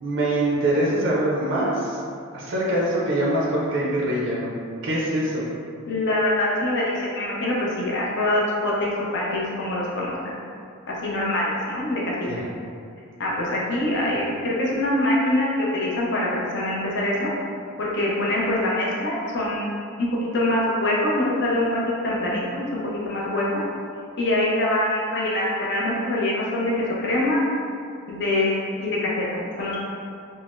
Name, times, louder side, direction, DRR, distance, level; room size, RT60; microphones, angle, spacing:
voice 1, 0.0-2.0 2.3-4.5 4.8-5.4 12.3-12.4, right 1 dB, 60° right, -5 dB, 0.5 m, -23 dB
voice 2, 5.9-10.3 10.9-12.3 13.2-17.3 17.8-19.7 20.0-20.1 20.3-23.6 24.2-26.7 27.0-27.4 28.1-29.8, left 1 dB, 50° left, -5 dB, 0.6 m, -24 dB
3.9 x 2.0 x 2.4 m, 2.4 s
head